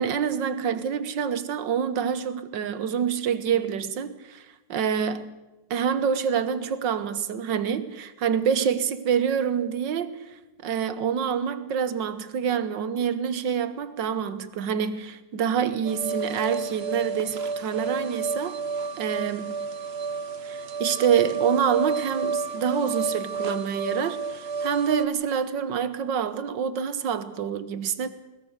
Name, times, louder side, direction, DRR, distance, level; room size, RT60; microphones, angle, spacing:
voice 1, 0.0-5.3 5.7-18.6 19.0-19.6 20.4-28.1, right 7 dB, 60° right, 1.7 m, -27 dB
sound 1, 15.8-25.1, right 4 dB, 80° right, 0.5 m, -30 dB
21.5 x 20.0 x 6.6 m
omnidirectional pair, 2.3 m